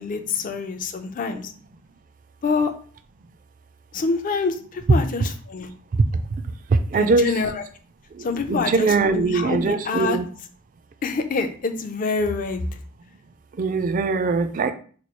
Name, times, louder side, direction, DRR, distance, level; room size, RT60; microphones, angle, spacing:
voice 1, 0.0-1.5 2.4-2.7 3.9-5.7 6.9-7.6 8.2-10.2 11.0-12.7, left 4 dB, 40° left, 8 dB, 0.4 m, -26 dB
voice 2, 6.9-7.4 8.5-10.3 13.6-14.7, right 4 dB, 40° right, 9 dB, 0.3 m, -21 dB
3.0 x 2.3 x 4.3 m, 0.43 s
head